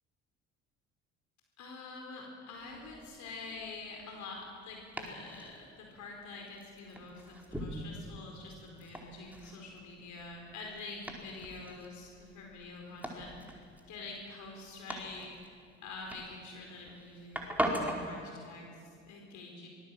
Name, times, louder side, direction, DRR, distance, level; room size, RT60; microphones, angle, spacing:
voice 1, 1.6-15.5 15.8-19.7, left 3 dB, 50° left, 0 dB, 4.7 m, -46 dB
Domestic sounds home sounds, 2.5-18.1, equal, 5° right, 4.5 m, -42 dB
25.0 x 20.0 x 7.8 m, 2.3 s
figure-of-eight pair, 55°, 36 cm